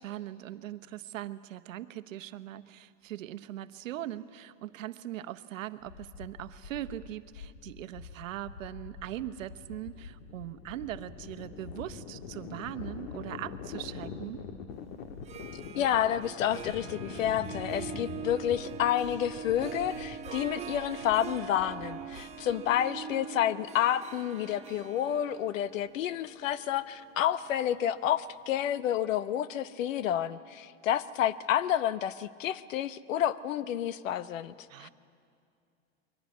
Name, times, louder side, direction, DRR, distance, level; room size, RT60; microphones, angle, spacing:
voice 1, 0.0-14.5 34.7-34.9, right 13 dB, 85° right, 12 dB, 1.0 m, -40 dB
sound 1, 5.8-22.8, left 5 dB, 60° left, 1.6 m, -44 dB
Harp, 15.1-28.0, right 7 dB, 15° right, 1.1 m, -43 dB
voice 2, 15.8-34.5 34.8-34.9, left 11 dB, 85° left, 16 dB, 1.0 m, -29 dB
22.5 x 17.0 x 9.6 m, 2.4 s
supercardioid pair, 150°, 38 cm